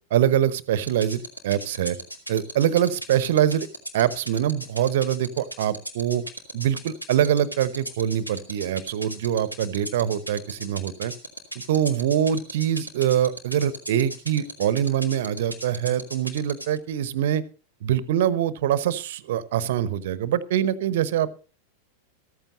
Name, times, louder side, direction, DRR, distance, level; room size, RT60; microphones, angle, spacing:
voice 1, 0.1-2.0 2.3-3.7 3.9-6.2 6.5-11.1 11.7-17.4 17.8-21.3, right 10 dB, 55° right, 18 dB, 0.9 m, -24 dB
sound 1, 0.9-16.8, right 1 dB, 90° left, 2.1 m, -34 dB
14.5 x 14.0 x 2.6 m, 0.35 s
figure-of-eight pair, 90°, 0 cm